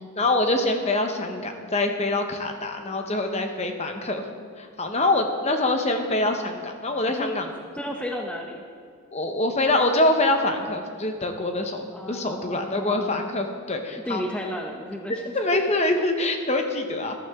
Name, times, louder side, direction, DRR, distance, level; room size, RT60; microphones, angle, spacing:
voice 1, 0.0-4.2 4.6-7.4 9.1-14.2 15.3-17.1, left 2 dB, 30° left, 5 dB, 0.9 m, -25 dB
voice 2, 1.4-1.7 7.1-7.3 7.7-8.6 11.9-13.2 14.0-15.6 16.0-16.1, equal, 5° left, 1 dB, 0.7 m, -33 dB
14.5 x 12.0 x 3.6 m, 2.2 s
head